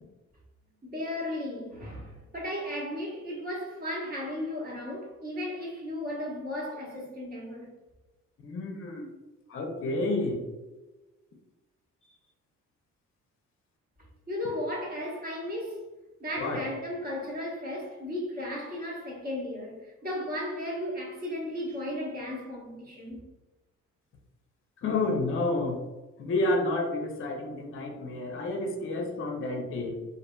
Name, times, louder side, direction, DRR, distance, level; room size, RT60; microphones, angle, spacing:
voice 1, 0.8-7.7 14.3-15.9 16.2-23.2, left 1 dB, 30° right, 1.0 m, -35 dB
voice 2, 8.4-9.1 9.5-10.4 16.4-16.6 24.8-25.8 26.2-30.0, left 2 dB, 45° left, 0.6 m, -30 dB
2.6 x 2.6 x 2.2 m
cardioid pair, 90°, 30 cm